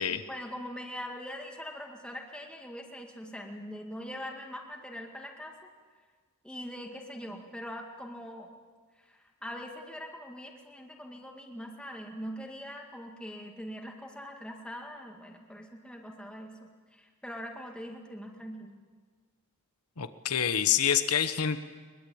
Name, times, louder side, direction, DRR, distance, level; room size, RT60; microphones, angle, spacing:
voice 1, 0.3-5.7 6.4-8.5 8.9-18.8, equal, 5° left, 0 dB, 2.0 m, -42 dB
voice 2, 20.0-21.6, left 8 dB, 80° left, 10 dB, 1.1 m, -27 dB
22.0 x 21.5 x 8.6 m, 1.5 s
head